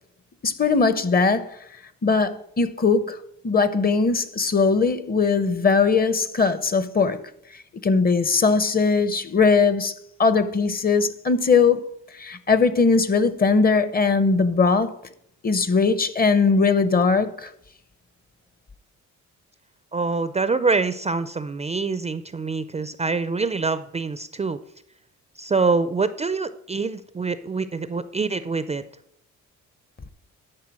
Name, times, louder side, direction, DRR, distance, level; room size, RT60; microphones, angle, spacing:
voice 1, 0.4-1.6 2.0-3.2 3.4-7.2 7.8-9.9 10.2-11.8 12.1-14.9 15.4-17.5, left 4 dB, 30° left, 0.7 m, -20 dB
voice 2, 19.9-24.6 25.4-28.8, right 4 dB, 20° right, 0.4 m, -25 dB
10.5 x 4.6 x 6.1 m
cardioid pair, 90°, 30 cm